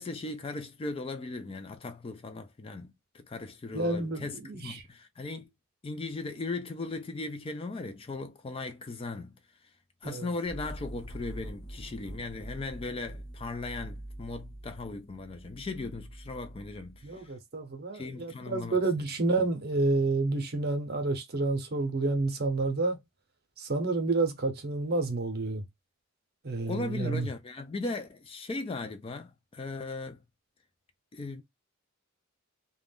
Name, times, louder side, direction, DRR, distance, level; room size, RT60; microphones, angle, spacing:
voice 1, 0.0-5.5 5.8-9.4 10.0-17.3 17.9-18.8 26.6-30.2 31.1-31.4, left 3 dB, 25° left, 0.3 m, -38 dB
voice 2, 3.7-4.8 10.0-10.3 17.0-23.0 23.6-25.6 26.4-27.3, right 3 dB, 45° right, 0.7 m, -29 dB
sound 1, 10.4-17.2, right 1 dB, 50° left, 0.8 m, -44 dB
2.4 x 2.2 x 3.4 m
head